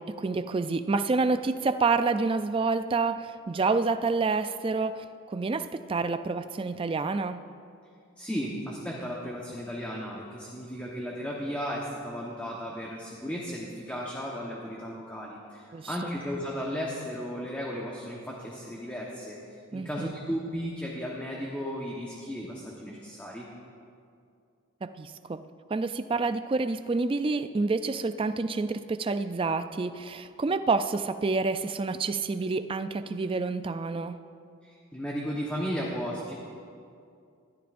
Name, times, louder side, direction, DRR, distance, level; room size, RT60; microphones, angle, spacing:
voice 1, 0.0-7.4 15.7-16.1 19.7-20.1 24.8-25.4 25.7-34.2, right 3 dB, 25° right, 10 dB, 0.3 m, -28 dB
voice 2, 8.2-23.5 34.6-36.3, equal, 5° left, -4 dB, 1.1 m, -35 dB
20.5 x 13.0 x 2.6 m, 2.4 s
head